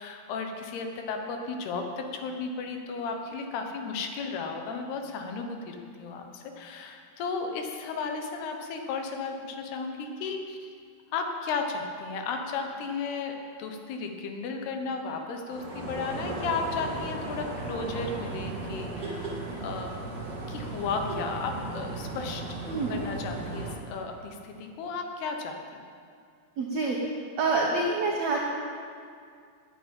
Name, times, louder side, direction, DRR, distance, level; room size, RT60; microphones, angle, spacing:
voice 1, 0.0-10.7 11.1-20.0 20.5-22.4 22.9-25.8, left 4 dB, 75° left, 4 dB, 3.0 m, -34 dB
sound 1, 15.5-23.8, right 2 dB, 35° right, 2.0 m, -36 dB
voice 2, 22.6-23.0 26.6-27.0 27.4-28.4, right 3 dB, 90° right, -2 dB, 1.5 m, -26 dB
10.5 x 8.9 x 8.7 m, 2.2 s
omnidirectional pair, 4.9 m